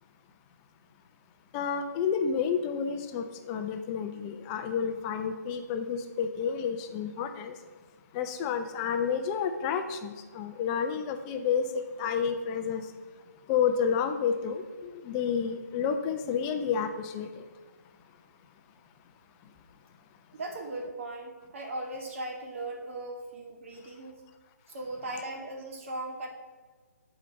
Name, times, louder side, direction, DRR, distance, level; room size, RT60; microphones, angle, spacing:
voice 1, 1.5-7.5 8.1-12.8 13.5-17.4, left 7 dB, 20° left, 7 dB, 0.7 m, -30 dB
voice 2, 20.3-24.2 24.7-26.3, right 2 dB, 45° right, 2 dB, 2.1 m, -38 dB
8.3 x 5.1 x 7.2 m, 1.4 s
figure-of-eight pair, 145°, 9 cm